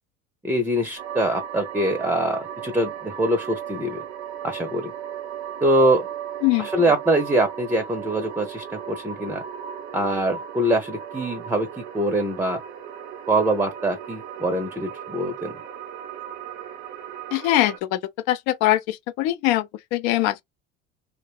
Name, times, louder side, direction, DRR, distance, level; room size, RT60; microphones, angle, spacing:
voice 1, 0.4-4.0 4.4-4.9 5.6-6.1 6.6-9.4 9.9-12.6 13.3-15.6, right 1 dB, 5° right, 0.6 m, -23 dB
sound 1, 1.0-17.8, right 9 dB, 70° right, 0.6 m, -36 dB
voice 2, 17.3-18.0 18.3-20.4, left 15 dB, 60° left, 0.6 m, -22 dB
2.4 x 2.1 x 3.4 m
hypercardioid pair, 70°, 36 cm